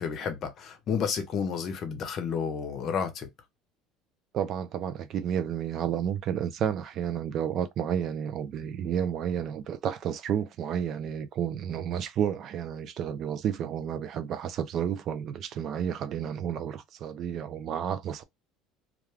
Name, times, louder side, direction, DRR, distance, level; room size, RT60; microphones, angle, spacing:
voice 1, 0.0-3.3, left 6 dB, 40° left, 0.8 m, -31 dB
voice 2, 4.3-18.2, right 9 dB, 40° right, 0.5 m, -31 dB
2.4 x 2.3 x 3.2 m
cardioid pair, 145°, 0 cm